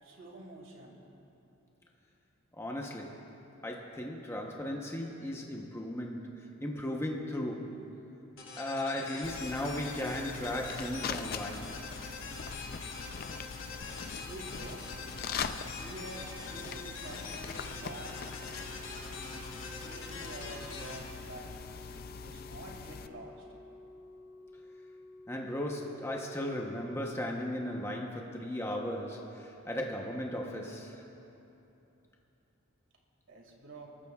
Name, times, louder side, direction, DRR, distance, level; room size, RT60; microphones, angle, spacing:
voice 1, 0.0-1.0 14.1-14.9 15.6-18.3 18.9-19.3 19.8-21.5 21.9-23.4 24.4-24.5 33.3-33.9, right 1 dB, 65° right, 0 dB, 2.2 m, -48 dB
voice 2, 2.5-3.2 3.6-7.9 8.6-11.7 25.3-31.0, left 1 dB, 10° left, 0 dB, 0.8 m, -36 dB
sound 1, 8.4-22.0, left 3 dB, 70° left, 2.0 m, -44 dB
sound 2, 9.2-23.1, left 6 dB, 45° left, 0.4 m, -42 dB
Organ, 17.6-28.5 29.6-29.8, left 2 dB, 5° right, 2.6 m, -53 dB
29.5 x 14.0 x 2.3 m, 2.9 s
head